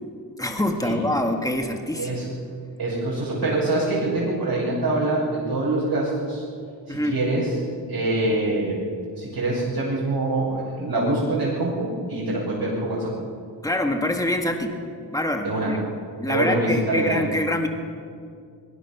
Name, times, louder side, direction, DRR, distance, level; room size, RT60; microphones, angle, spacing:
voice 1, 0.4-2.3 6.9-7.2 13.6-14.8 15.1-15.8 16.2-17.7, left 1 dB, 10° left, 3 dB, 1.9 m, -25 dB
voice 2, 2.0-2.3 2.8-6.5 6.9-7.5 7.9-8.8 9.2-13.1 15.4-15.7 16.2-17.2, right 2 dB, 65° right, -8 dB, 6.5 m, -25 dB
22.0 x 22.0 x 6.1 m, 2.3 s
wide cardioid pair, 140°, 41 cm